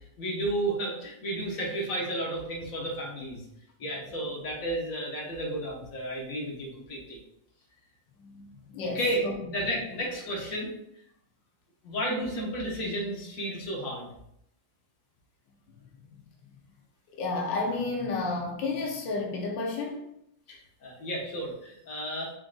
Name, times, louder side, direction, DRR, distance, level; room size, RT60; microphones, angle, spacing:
voice 1, 0.2-3.4 3.8-7.2 8.8-10.7 11.8-14.1 20.5-22.3, right 1 dB, 55° left, -2 dB, 1.4 m, -32 dB
voice 2, 8.7-9.3 17.1-20.0, left 3 dB, 90° left, 0 dB, 1.5 m, -31 dB
4.9 x 3.8 x 2.4 m, 0.77 s
omnidirectional pair, 1.9 m